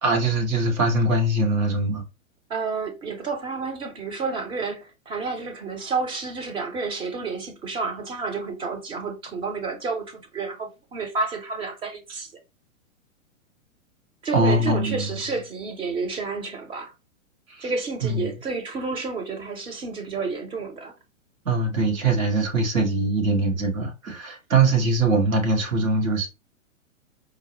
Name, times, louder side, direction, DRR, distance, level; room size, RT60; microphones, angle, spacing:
voice 1, 0.0-2.0 14.3-15.1 18.0-18.3 21.4-26.3, right 2 dB, 85° right, 1.5 m, -22 dB
voice 2, 2.5-12.3 14.2-16.9 17.6-20.9, right 4 dB, 15° right, 0.5 m, -30 dB
4.6 x 2.0 x 2.9 m
hypercardioid pair, 125°, 40 cm